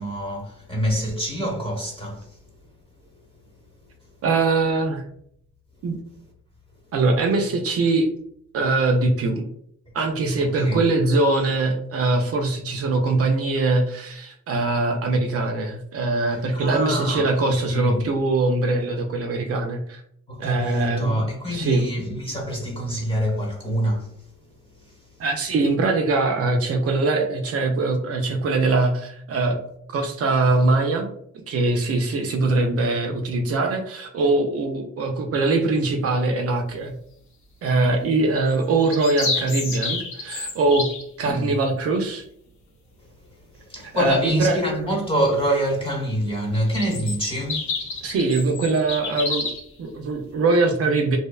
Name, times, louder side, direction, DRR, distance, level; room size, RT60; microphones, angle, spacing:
voice 1, 0.0-2.4 10.4-10.8 16.3-17.3 17.7-18.0 20.3-24.3 24.8-25.0 41.2-41.5 43.5-48.0, equal, 20° left, 1.0 m, -26 dB
voice 2, 4.2-5.0 5.8-6.0 6.9-8.1 8.5-9.5 9.9-20.0 20.4-21.2 21.5-21.9 25.2-29.6 29.9-31.1 31.5-36.9 37.6-40.9 41.2-42.2 43.9-44.6 48.0-49.5 49.8-51.2, right 3 dB, 50° right, 0.5 m, -22 dB
sound 1, 38.5-41.0 46.5-49.7, left 4 dB, 75° left, 0.8 m, -29 dB
2.7 x 2.0 x 2.3 m
cardioid pair, 90°, 30 cm